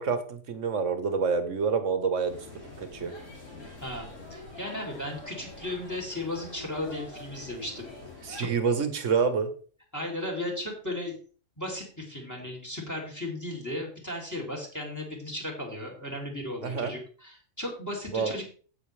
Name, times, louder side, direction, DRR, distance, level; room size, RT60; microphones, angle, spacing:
voice 1, 0.0-2.4 2.8-3.1 8.2-9.5 16.6-16.9 18.1-18.3, right 5 dB, 60° right, 9 dB, 1.6 m, -27 dB
sound 1, 2.2-8.4, left 2 dB, 60° left, 3.9 m, -45 dB
voice 2, 3.8-7.9 8.4-8.5 9.9-11.2 11.6-18.4, left 1 dB, 10° left, 1 dB, 2.9 m, -35 dB
16.0 x 6.2 x 3.3 m, 0.41 s
omnidirectional pair, 1.5 m